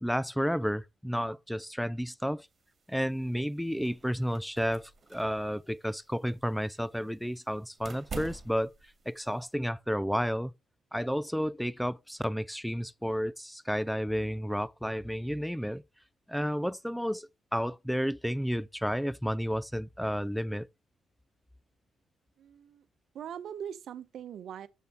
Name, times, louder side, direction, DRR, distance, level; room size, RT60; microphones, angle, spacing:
voice 1, 0.0-2.5 2.9-8.7 9.1-10.5 10.9-15.8 16.3-20.7, equal, ahead, 0.4 m, -31 dB
sound 1, 2.5-9.5, right 4 dB, 40° right, 2.0 m, -47 dB
voice 2, 22.4-22.9 23.1-24.7, right 9 dB, 65° right, 0.9 m, -41 dB
7.6 x 6.9 x 4.3 m
cardioid pair, 90°, 0 cm